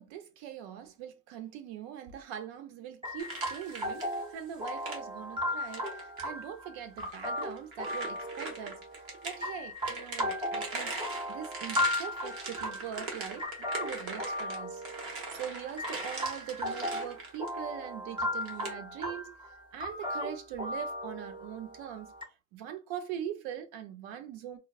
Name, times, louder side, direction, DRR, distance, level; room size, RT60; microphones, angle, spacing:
voice 1, 0.0-14.8 15.3-22.1 22.5-24.6, right 9 dB, 75° right, 0.7 m, -42 dB
sound 1, 3.0-22.2, left 1 dB, 10° right, 0.3 m, -37 dB
sound 2, 3.2-4.2 4.5-5.0 5.7-6.3 7.0-9.4 9.8-17.6 18.4-18.7, right 3 dB, 50° right, 1.1 m, -41 dB
3.9 x 2.1 x 2.3 m
cardioid pair, 135°, 46 cm